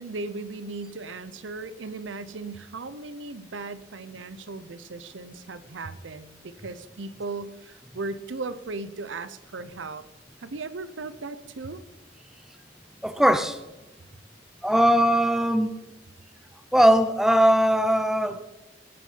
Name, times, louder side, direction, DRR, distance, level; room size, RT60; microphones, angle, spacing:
voice 1, 0.0-10.1 10.4-11.8, right 3 dB, 90° right, 14 dB, 0.7 m, -37 dB
voice 2, 13.0-13.6 14.6-15.7 16.7-18.6, equal, ahead, 10 dB, 0.6 m, -20 dB
18.5 x 6.3 x 5.6 m, 1.0 s
head